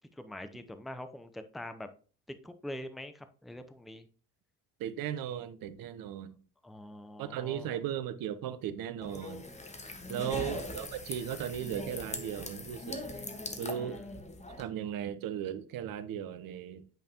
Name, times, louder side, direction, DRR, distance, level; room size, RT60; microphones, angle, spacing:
voice 1, 0.1-1.9 2.3-4.1 6.6-7.7 10.1-10.6 13.6-14.1, left 1 dB, ahead, 0.6 m, -44 dB
voice 2, 4.8-6.4 7.2-9.4 10.1-13.0 13.6-14.0 14.6-16.8, right 10 dB, 55° right, 0.8 m, -37 dB
sound 1, 9.0-14.6, left 2 dB, 15° left, 1.3 m, -41 dB
9.2 x 5.2 x 2.9 m
hypercardioid pair, 55°, 42 cm